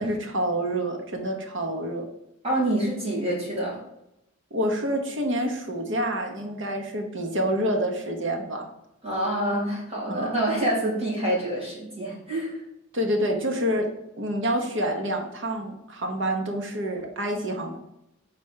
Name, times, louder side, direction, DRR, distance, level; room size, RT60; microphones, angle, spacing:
voice 1, 0.0-2.1 4.5-8.7 10.0-10.4 12.9-13.9 14.2-17.8, equal, 60° right, 2 dB, 1.1 m, -27 dB
voice 2, 2.4-3.8 9.0-12.6, right 1 dB, 30° right, -5 dB, 2.2 m, -27 dB
4.5 x 4.0 x 5.7 m, 0.86 s
head